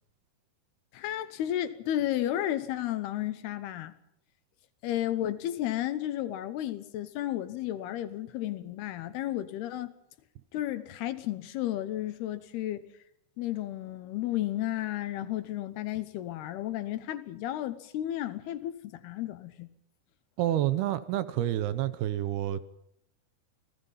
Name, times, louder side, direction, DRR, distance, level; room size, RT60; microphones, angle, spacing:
voice 1, 0.9-3.9 4.8-9.9 10.5-12.9 13.4-19.7, left 13 dB, 75° left, 2.8 m, -33 dB
voice 2, 20.4-22.6, right 12 dB, 75° right, 2.7 m, -28 dB
29.0 x 19.0 x 5.6 m
omnidirectional pair, 5.0 m